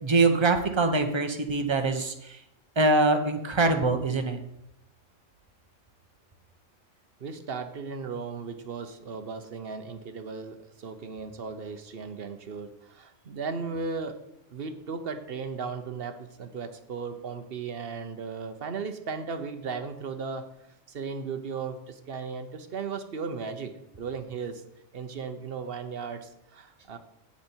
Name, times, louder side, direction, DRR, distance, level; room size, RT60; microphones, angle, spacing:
voice 1, 0.0-2.4 2.8-4.4, right 3 dB, 25° right, 5 dB, 0.9 m, -24 dB
voice 2, 7.2-14.2 14.5-20.4 20.9-24.6 24.9-27.0, right 5 dB, 50° right, 8 dB, 1.0 m, -36 dB
8.5 x 8.4 x 4.5 m, 0.80 s
omnidirectional pair, 1.3 m